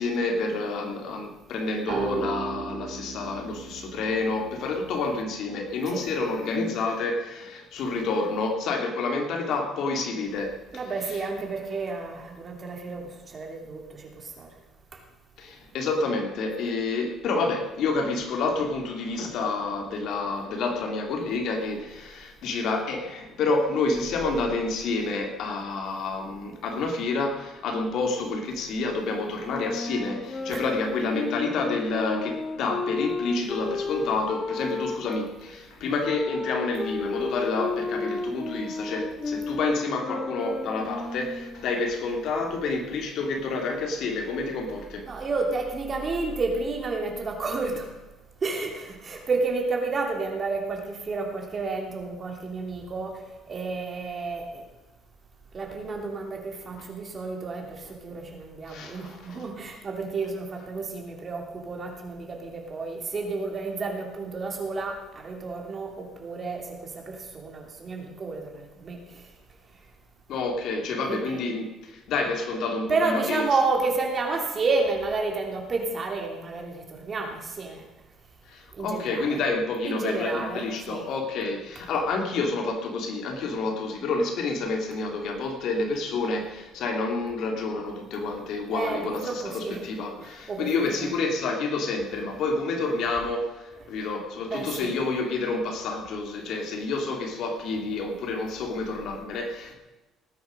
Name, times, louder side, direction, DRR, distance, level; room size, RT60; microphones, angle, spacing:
voice 1, 0.0-11.2 15.4-45.2 56.8-56.9 58.7-59.5 70.3-73.4 78.5-99.7, left 3 dB, 60° left, 3 dB, 2.7 m, -29 dB
sound 1, 1.9-5.4, right 4 dB, 65° right, 5.2 m, -35 dB
voice 2, 10.7-14.5 30.5-30.6 45.0-47.9 48.4-54.6 55.5-69.2 71.1-71.4 72.9-77.8 78.8-79.4 79.8-81.1 88.7-89.9 90.2-90.7 91.0-91.1 94.5-94.9, right 3 dB, 30° right, 2 dB, 2.9 m, -31 dB
sound 2, 29.5-35.3 36.0-41.6, left 3 dB, 25° left, 1.4 m, -32 dB
18.5 x 9.8 x 5.2 m, 1.1 s
cardioid pair, 145°, 0 cm